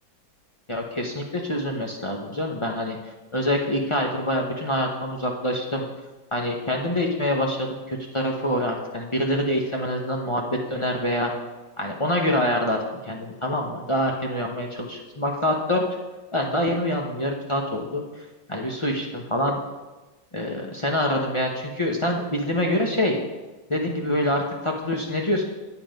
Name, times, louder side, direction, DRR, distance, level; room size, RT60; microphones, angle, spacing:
voice 1, 0.7-3.0 3.3-5.8 6.3-11.3 11.8-12.8 13.1-15.8 16.3-18.0 18.5-19.6 20.3-23.2 23.7-25.4, left 1 dB, 45° left, 0 dB, 0.4 m, -25 dB
9.0 x 8.4 x 5.1 m, 1.2 s
omnidirectional pair, 2.1 m